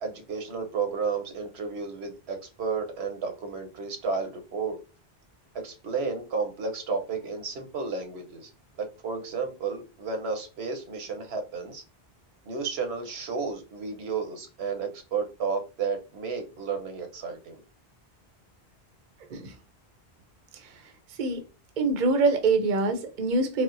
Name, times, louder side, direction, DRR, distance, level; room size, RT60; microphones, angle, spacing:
voice 1, 0.0-4.8 5.5-8.5 8.8-11.8 12.5-17.6, right 5 dB, 85° right, 1.0 m, -32 dB
voice 2, 21.8-23.6, right 3 dB, 55° right, 0.7 m, -24 dB
4.1 x 2.0 x 2.5 m
omnidirectional pair, 1.1 m